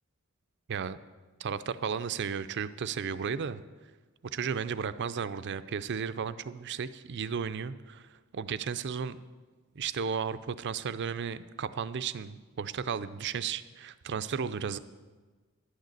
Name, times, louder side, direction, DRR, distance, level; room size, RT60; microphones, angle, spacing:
voice 1, 1.4-3.6 4.3-9.2 9.8-14.8, right 6 dB, 55° right, 14 dB, 0.5 m, -34 dB
11.5 x 6.5 x 8.3 m, 1.4 s
head